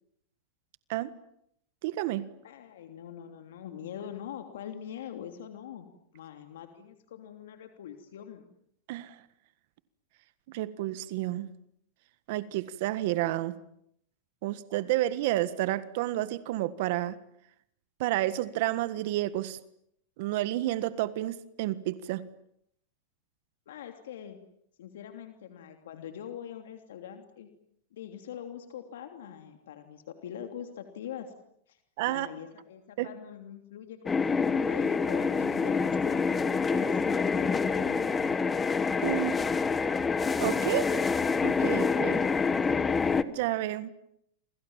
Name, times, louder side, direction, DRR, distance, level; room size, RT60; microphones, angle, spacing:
voice 1, 1.8-2.3 8.9-9.2 10.5-11.5 12.3-13.5 14.4-17.2 18.0-19.6 20.2-22.2 32.0-32.3 33.0-33.1 39.0-39.3 40.4-40.9 41.4-42.2 43.3-43.9, right 15 dB, 60° right, 14 dB, 1.6 m, -30 dB
voice 2, 2.4-5.9 6.1-8.5 23.7-24.4 24.8-27.5 27.9-31.3 31.7-31.8 32.1-38.4, left 9 dB, 80° left, 6 dB, 3.0 m, -43 dB
sound 1, 34.1-43.2, left 5 dB, 15° left, 1.3 m, -27 dB
29.0 x 26.0 x 7.4 m, 0.72 s
supercardioid pair, 140°, 0 cm